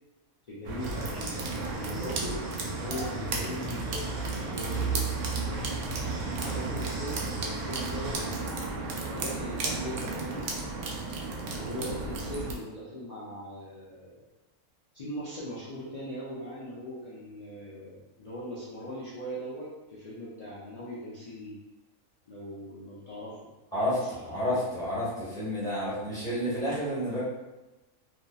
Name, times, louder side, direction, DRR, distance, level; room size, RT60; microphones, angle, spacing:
voice 1, 0.5-1.5 1.7-2.4 2.7-3.9 4.3-5.1 6.4-10.5 11.5-14.2 14.9-21.6 22.3-23.5 23.8-24.6, equal, 55° left, -10 dB, 0.4 m, -40 dB
sound 1, 0.6-12.5, right 3 dB, 85° right, 1.0 m, -33 dB
sound 2, 0.8-8.3, equal, 60° right, 1.0 m, -43 dB
voice 2, 24.3-27.3, equal, 5° left, -10 dB, 1.1 m, -30 dB
2.8 x 2.4 x 2.3 m, 1.1 s
omnidirectional pair, 1.5 m